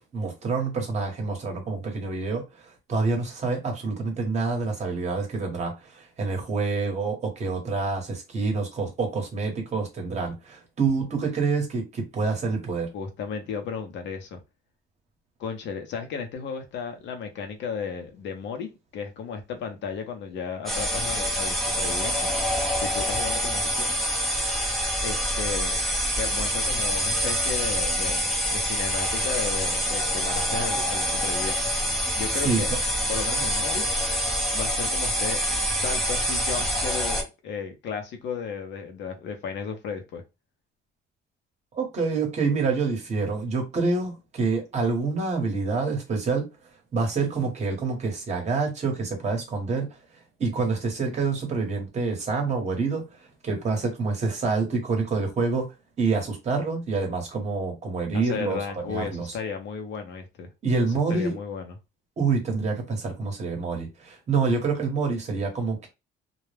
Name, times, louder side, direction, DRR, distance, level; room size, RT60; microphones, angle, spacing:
voice 1, 0.0-12.9 32.3-32.6 41.7-46.5 46.9-49.9 50.4-53.0 53.4-55.7 56.0-58.6 58.9-59.4 60.6-61.4 62.2-65.9, right 4 dB, 35° right, 0.9 m, -27 dB
voice 2, 12.9-14.4 15.4-22.3 22.8-23.9 25.0-25.8 26.2-31.6 32.1-32.7 33.1-33.8 34.5-35.4 35.8-40.2 58.1-60.5 60.9-61.7, left 6 dB, 65° left, 0.7 m, -34 dB
sound 1, 20.7-37.2, equal, ahead, 0.5 m, -26 dB
2.2 x 2.1 x 3.2 m
cardioid pair, 170°, 20 cm